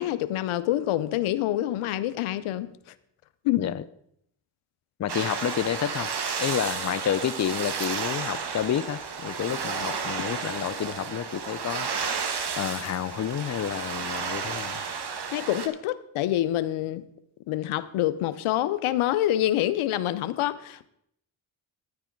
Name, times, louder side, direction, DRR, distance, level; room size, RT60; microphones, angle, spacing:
voice 1, 0.0-2.7 3.4-3.7 15.3-17.0 17.5-20.9, left 13 dB, 80° left, 0.7 m, -26 dB
voice 2, 5.0-6.1 6.4-12.3 12.6-14.8, left 9 dB, 35° left, 0.5 m, -30 dB
sound 1, 5.1-15.7, right 5 dB, 50° right, 1.4 m, -32 dB
10.5 x 9.7 x 4.5 m
supercardioid pair, 50°, 49 cm